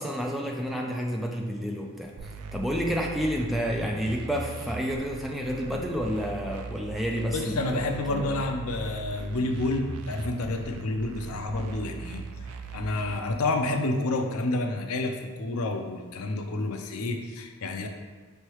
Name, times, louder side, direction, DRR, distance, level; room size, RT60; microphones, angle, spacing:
voice 1, 0.0-2.1 2.5-8.4, equal, ahead, 0 dB, 0.3 m, -30 dB
sound 1, 2.2-13.2, right 4 dB, 75° right, 0.4 m, -40 dB
voice 2, 7.3-17.9, left 2 dB, 75° left, 4 dB, 0.5 m, -29 dB
5.4 x 3.3 x 3.0 m, 1.4 s
head